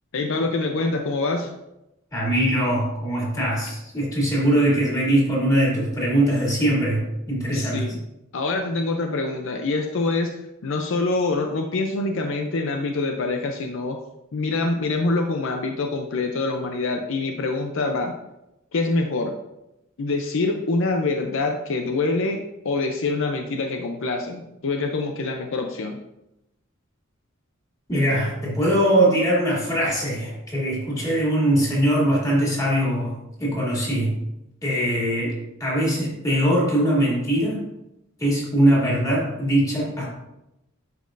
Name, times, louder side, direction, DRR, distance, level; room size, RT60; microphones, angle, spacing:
voice 1, 0.1-1.5 7.5-8.0 8.3-10.3 10.6-14.0 14.3-18.2 18.7-19.3 20.0-26.0, left 3 dB, 65° left, 3 dB, 0.6 m, -25 dB
voice 2, 2.1-7.9 27.9-34.2 34.6-37.7 38.2-40.1, right 1 dB, 15° left, -6 dB, 2.7 m, -22 dB
10.5 x 5.2 x 2.6 m, 0.90 s
head